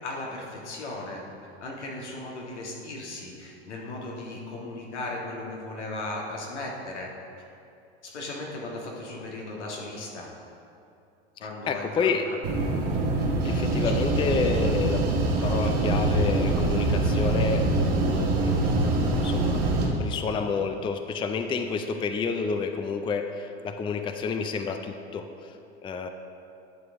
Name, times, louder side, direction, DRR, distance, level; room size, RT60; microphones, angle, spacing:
voice 1, 0.0-1.2 1.6-7.1 8.0-10.3 11.4-12.1, left 2 dB, 85° left, -2 dB, 1.8 m, -36 dB
voice 2, 11.7-12.3 13.4-15.1 15.4-18.9 19.2-19.6 20.0-25.6 25.8-26.1, left 5 dB, 15° left, 7 dB, 0.4 m, -29 dB
sound 1, 12.4-19.9, right 2 dB, 45° right, 1.8 m, -24 dB
11.0 x 6.8 x 3.6 m, 2.6 s
hypercardioid pair, 90°, 34 cm